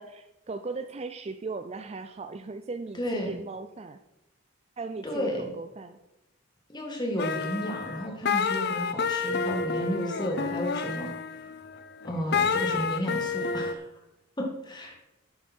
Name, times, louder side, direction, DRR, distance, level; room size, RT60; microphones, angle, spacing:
voice 1, 0.0-4.0 4.8-6.0, right 3 dB, 30° right, 9 dB, 0.4 m, -38 dB
voice 2, 2.9-3.4 5.0-5.5 6.7-11.4 12.0-13.9 14.4-15.0, equal, 20° left, 0 dB, 1.9 m, -32 dB
sound 1, 7.2-13.7, left 5 dB, 50° left, 0.6 m, -29 dB
10.5 x 8.3 x 4.4 m, 0.93 s
head